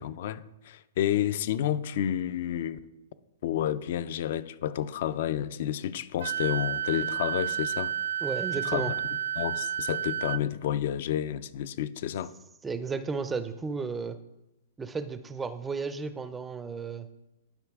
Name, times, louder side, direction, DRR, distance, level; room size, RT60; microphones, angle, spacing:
voice 1, 0.0-2.8 3.4-7.9 8.6-8.9 9.4-12.3, left 10 dB, 55° left, 0.4 m, -30 dB
Wind instrument woodwind instrument, 6.2-10.4, right 10 dB, 70° right, 0.3 m, -31 dB
voice 2, 8.2-8.9 12.6-14.2 14.8-17.1, right 4 dB, 10° right, 0.4 m, -33 dB
11.5 x 5.2 x 3.6 m
hypercardioid pair, 155°, 0 cm